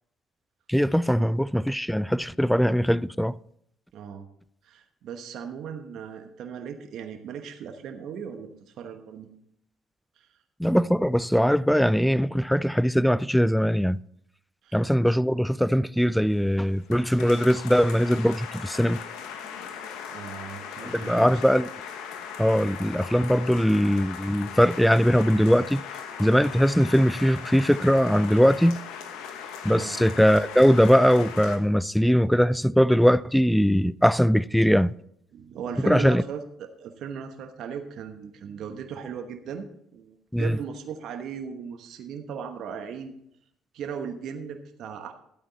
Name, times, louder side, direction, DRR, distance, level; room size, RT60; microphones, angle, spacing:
voice 1, 0.7-3.4 10.6-14.0 14.7-19.0 20.8-21.7 22.4-25.8 26.2-28.8 29.6-34.9 35.8-36.2 40.3-40.6, equal, ahead, 0.4 m, -21 dB
voice 2, 3.9-4.3 4.6-8.5 8.8-9.3 10.2-10.3 14.6-14.8 15.1-15.2 19.6-21.4 29.8-30.0 35.3-43.1 43.7-45.1, right 7 dB, 65° right, 1.1 m, -37 dB
sound 1, 16.2-31.6, left 7 dB, 75° left, 1.2 m, -39 dB
13.0 x 8.6 x 4.1 m
hypercardioid pair, 65°, 0 cm